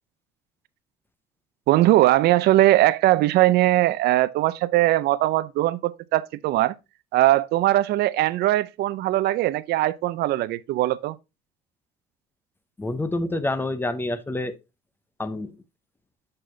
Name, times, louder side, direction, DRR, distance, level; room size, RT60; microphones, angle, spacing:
voice 1, 1.7-6.8 7.1-11.2, right 15 dB, 75° right, 0.5 m, -20 dB
voice 2, 12.8-14.5 15.2-15.5, left 2 dB, 10° left, 0.7 m, -27 dB
6.5 x 5.9 x 2.7 m
cardioid pair, 110°, 17 cm